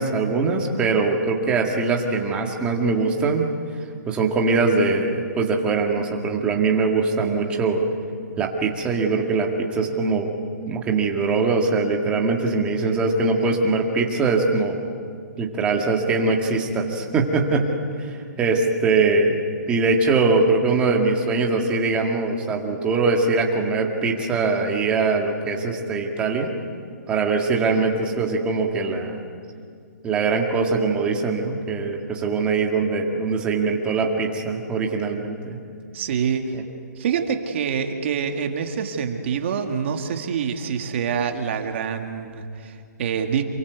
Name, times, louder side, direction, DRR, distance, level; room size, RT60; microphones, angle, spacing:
voice 1, 0.0-3.5 4.1-7.8 8.4-10.3 10.7-14.8 15.4-17.7 18.0-19.4 19.7-26.5 27.1-29.2 30.0-35.6 36.5-36.6, right 4 dB, 10° right, 1 dB, 2.0 m, -22 dB
voice 2, 35.9-36.5 37.0-43.4, right 7 dB, 40° right, 4 dB, 2.0 m, -26 dB
28.0 x 23.0 x 8.2 m, 2.2 s
hypercardioid pair, 170°, 10 cm